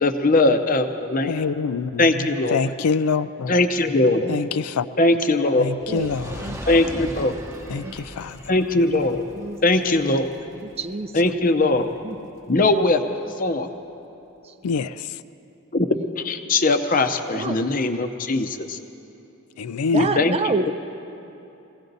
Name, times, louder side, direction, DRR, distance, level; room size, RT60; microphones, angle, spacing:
voice 1, 0.0-1.3 2.0-2.6 3.5-4.3 5.0-5.7 6.7-7.4 8.5-9.2 9.6-10.3 11.1-11.9 12.5-13.0 13.4-13.7 15.7-15.9 16.2-18.8 19.9-20.4, left 2 dB, 40° left, 8 dB, 0.7 m, -20 dB
voice 2, 1.3-2.0 2.5-3.5 4.3-4.9 5.6-6.6 7.7-8.4 14.6-14.9 19.6-20.0, left 5 dB, 85° left, 13 dB, 0.4 m, -25 dB
Fire, 5.8-12.1 12.8-12.9, equal, 10° right, 0.9 m, -39 dB
voice 3, 10.6-11.1 12.0-12.2 17.3-17.6 19.9-20.7, right 3 dB, 25° right, 10 dB, 0.4 m, -27 dB
21.0 x 16.5 x 4.0 m, 2.9 s
head